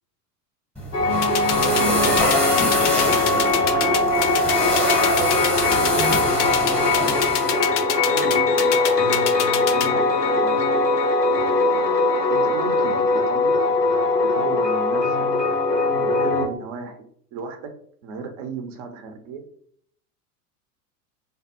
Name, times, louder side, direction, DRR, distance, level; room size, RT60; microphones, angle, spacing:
sound 1, 0.8-7.6, left 1 dB, 5° left, 0.7 m, -26 dB
sound 2, 0.9-16.5, left 3 dB, 90° left, 0.7 m, -21 dB
sound 3, 1.2-9.9, left 9 dB, 50° left, 0.5 m, -25 dB
voice 1, 1.7-4.9 5.5-10.0 10.3-11.0 12.3-13.8 14.3-15.3 15.7-17.7 18.0-19.4, right 5 dB, 25° right, 7 dB, 0.3 m, -35 dB
3.3 x 2.2 x 2.7 m, 0.63 s
figure-of-eight pair, 85°, 46 cm